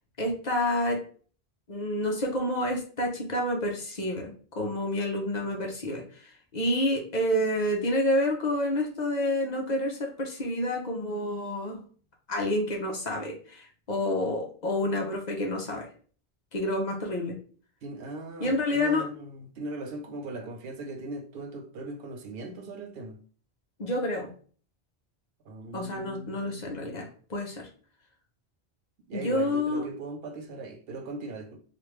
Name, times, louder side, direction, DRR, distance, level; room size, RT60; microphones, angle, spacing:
voice 1, 0.2-1.0 1.7-11.9 12.3-15.9 16.5-17.4 18.4-19.0 23.8-24.3 25.7-27.0 27.3-27.7 29.1-29.8, left 1 dB, 50° left, 0.7 m, -29 dB
voice 2, 17.8-23.2 25.5-27.1 29.1-31.6, right 2 dB, 70° right, 0.8 m, -39 dB
3.2 x 2.5 x 3.1 m
omnidirectional pair, 1.1 m